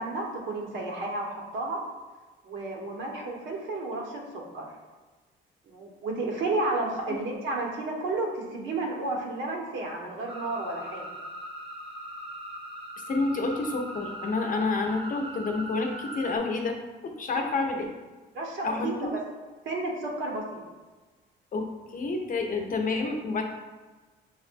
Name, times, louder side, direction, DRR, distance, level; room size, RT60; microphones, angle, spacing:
voice 1, 0.0-1.8 2.4-4.2 4.5-4.7 5.7-11.1 18.3-19.2 19.6-20.6, right 2 dB, 75° right, -1 dB, 0.9 m, -32 dB
sound 1, 10.3-16.4, right 1 dB, 30° right, 0.7 m, -40 dB
voice 2, 13.1-16.8 17.0-17.9 18.6-19.1 21.5-21.7 21.9-23.4, left 3 dB, 45° left, 3 dB, 0.6 m, -29 dB
5.8 x 2.1 x 2.5 m, 1.3 s
cardioid pair, 90°, 20 cm